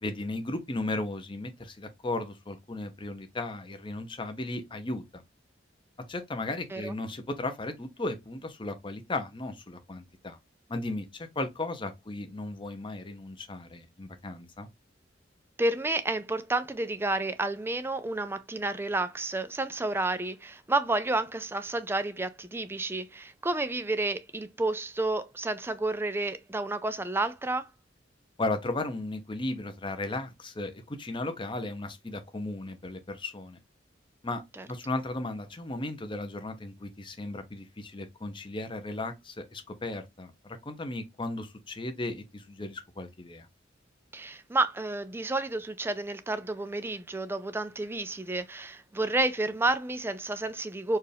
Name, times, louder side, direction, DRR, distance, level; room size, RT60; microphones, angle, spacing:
voice 1, 0.0-5.2 6.1-10.4 10.7-14.7 28.4-33.6 34.2-43.5, left 2 dB, 25° left, 0.7 m, -35 dB
voice 2, 15.6-27.7 34.6-34.7 44.1-51.0, right 2 dB, 10° right, 0.4 m, -30 dB
4.5 x 2.5 x 3.4 m
head